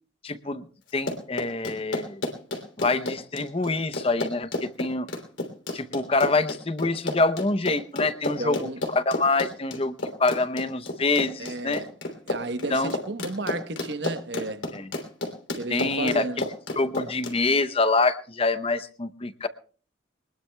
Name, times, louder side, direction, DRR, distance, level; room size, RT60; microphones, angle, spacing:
voice 1, 0.2-0.7 0.9-2.2 2.8-5.1 5.7-11.8 12.7-12.9 14.7-14.9 15.7-16.3 16.8-19.5, left 3 dB, 30° left, 0.7 m, -26 dB
Run, 0.9-17.3, left 2 dB, 75° left, 3.1 m, -31 dB
voice 2, 8.4-8.8 11.4-11.9 12.3-14.6 15.6-16.4, right 2 dB, 65° right, 1.0 m, -32 dB
22.5 x 20.0 x 2.3 m
head